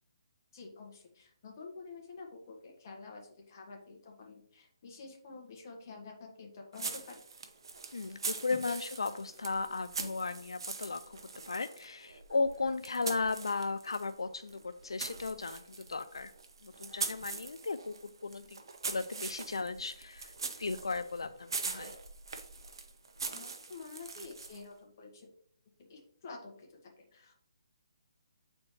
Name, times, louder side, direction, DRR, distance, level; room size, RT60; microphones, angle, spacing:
voice 1, 0.5-7.2 8.5-8.6 23.3-25.3 25.8-27.3, left 4 dB, 40° left, 1 dB, 1.7 m, -49 dB
sound 1, 6.7-14.1 14.5-24.7, right 4 dB, 65° right, 1.0 m, -42 dB
voice 2, 7.9-11.2 11.5-16.3 16.6-18.6 18.9-20.3 20.6-21.9, left 4 dB, 85° left, 10 dB, 0.4 m, -36 dB
8.6 x 4.2 x 3.1 m, 0.64 s
hypercardioid pair, 155°, 3 cm